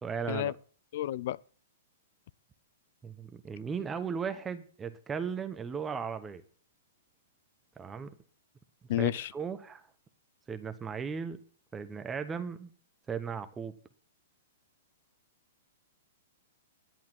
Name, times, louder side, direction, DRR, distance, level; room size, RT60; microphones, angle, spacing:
voice 1, 0.0-0.5 3.0-6.4 7.8-8.1 9.0-9.9 10.5-11.4 11.7-12.7 13.1-13.7, right 6 dB, 15° right, 0.9 m, -36 dB
voice 2, 0.9-1.4 8.9-9.3, left 12 dB, 60° left, 0.5 m, -30 dB
11.0 x 9.0 x 5.9 m
hypercardioid pair, 135°, 0 cm